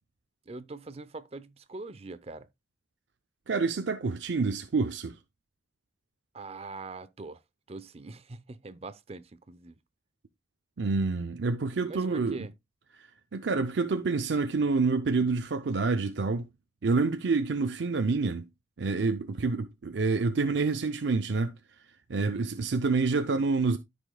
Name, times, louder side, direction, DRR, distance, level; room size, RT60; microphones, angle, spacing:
voice 1, 0.5-2.5 6.3-7.4 7.7-9.8 11.8-12.5 22.3-22.7, right 3 dB, 35° right, 0.6 m, -43 dB
voice 2, 3.5-5.2 10.8-12.4 13.0-16.5 16.8-18.4 18.8-21.6 22.1-23.8, right 4 dB, 85° right, 0.5 m, -27 dB
13.5 x 5.1 x 2.2 m
head